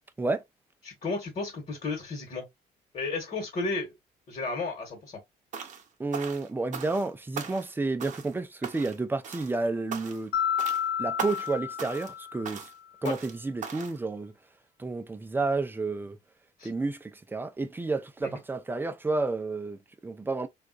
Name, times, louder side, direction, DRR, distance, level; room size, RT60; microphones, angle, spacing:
voice 1, 0.8-2.4 2.9-3.9 4.3-5.2 13.0-13.2 16.6-16.7, left 3 dB, 40° left, 1.3 m, -33 dB
sound 1, 5.5-5.9 6.1-7.1 7.4-7.7 8.0-8.4 8.6-9.0 9.2-9.6 9.9-10.3 10.6-10.8 11.2-11.5 11.8-12.1 12.5-12.7 13.1-13.3 13.6-14.0, right 7 dB, 45° right, 0.7 m, -39 dB
voice 2, 6.0-10.3 11.0-12.7 13.0-14.3 14.8-16.2 16.6-20.5, right 3 dB, 10° right, 0.4 m, -31 dB
Mallet percussion, 10.3-12.7, left 9 dB, 65° left, 0.5 m, -31 dB
3.5 x 2.4 x 2.4 m
cardioid pair, 110°, 17 cm